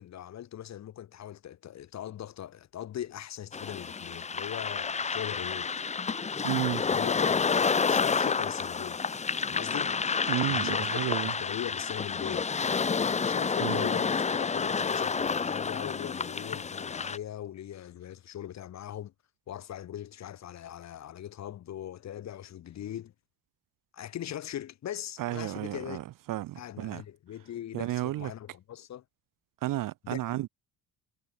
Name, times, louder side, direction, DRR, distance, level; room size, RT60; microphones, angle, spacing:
voice 1, 0.0-5.7 6.9-7.4 7.9-9.0 9.5-10.0 10.5-12.5 13.2-19.1 19.5-23.1 23.9-26.0 26.5-29.0 30.0-30.5, left 11 dB, 40° left, 1.3 m, -40 dB
sound 1, 3.5-17.2, left 5 dB, 15° left, 0.8 m, -29 dB
voice 2, 6.4-6.8 10.3-11.3 13.6-13.8 25.2-27.0 27.7-28.3 29.6-30.5, right 15 dB, 50° right, 0.8 m, -32 dB
cardioid pair, 165°, 41 cm